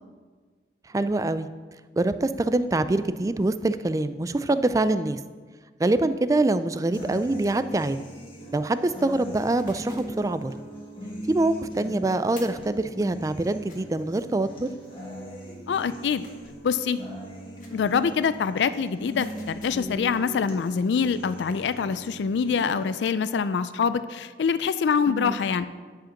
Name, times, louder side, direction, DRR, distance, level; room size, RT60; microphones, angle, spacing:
voice 1, 0.9-1.5 2.0-5.2 5.8-8.0 8.5-10.5 11.3-14.7 25.1-25.4, right 2 dB, 20° right, 12 dB, 0.3 m, -24 dB
sound 1, 6.9-22.9, right 1 dB, 30° left, 1.7 m, -40 dB
sound 2, 9.6-10.2 12.3-12.7 13.7-13.8 16.2-16.6 17.6-17.9 19.2-20.0, left 3 dB, 45° left, 1.5 m, -49 dB
voice 2, 15.7-16.2 16.6-17.0 17.7-25.7, left 6 dB, 80° left, 14 dB, 0.4 m, -25 dB
10.0 x 5.0 x 5.8 m, 1.5 s
head